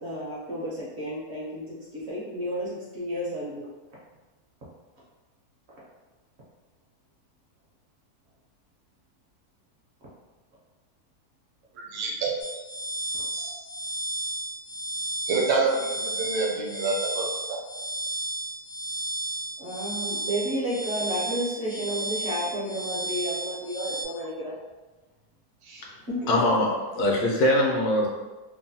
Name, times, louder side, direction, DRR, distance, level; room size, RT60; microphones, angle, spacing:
voice 1, 0.0-3.7 5.7-5.8 13.1-13.2 19.6-24.5 26.1-26.4, equal, 55° right, -7 dB, 0.8 m, -32 dB
voice 2, 11.8-12.4 13.3-13.6 15.3-17.6 25.6-25.8, right 3 dB, 80° right, -1 dB, 1.1 m, -28 dB
sound 1, 12.4-24.1, right 1 dB, 60° left, 0.8 m, -33 dB
voice 3, 26.3-28.1, left 1 dB, 75° left, -2 dB, 1.1 m, -22 dB
3.0 x 2.1 x 2.6 m, 1.2 s
omnidirectional pair, 1.7 m